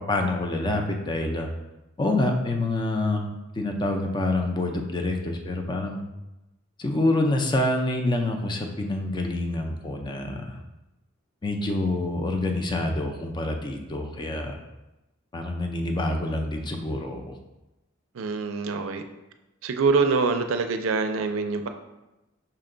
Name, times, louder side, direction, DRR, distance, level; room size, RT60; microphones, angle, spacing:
voice 1, 0.1-1.5 2.0-6.0 6.8-10.6 11.4-14.6 15.3-17.4, left 2 dB, 20° left, 3 dB, 0.4 m, -27 dB
voice 2, 18.1-19.0 19.6-21.7, right 4 dB, 75° right, 7 dB, 0.4 m, -24 dB
5.6 x 2.2 x 3.7 m, 0.98 s
head